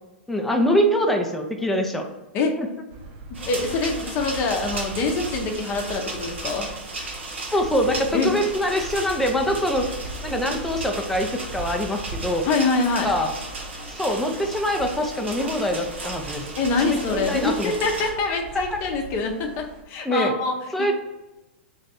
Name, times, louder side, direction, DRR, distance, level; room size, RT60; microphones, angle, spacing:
voice 1, 0.3-2.0 2.6-2.7 7.5-9.9 10.2-12.5 13.0-13.3 13.9-16.5 16.8-17.7 18.5-18.6 20.0-20.3 20.7-20.9, equal, 5° left, 2 dB, 0.5 m, -24 dB
sound 1, 2.9-19.8, right 2 dB, 50° right, 0.7 m, -40 dB
sound 2, 3.3-18.1, right 2 dB, 85° right, 0.9 m, -35 dB
voice 2, 3.5-6.7 8.1-8.3 12.5-13.1 16.6-20.5 20.8-20.9, left 3 dB, 40° left, 3 dB, 0.7 m, -24 dB
3.1 x 2.5 x 4.1 m, 1.1 s
hypercardioid pair, 115°, 6 cm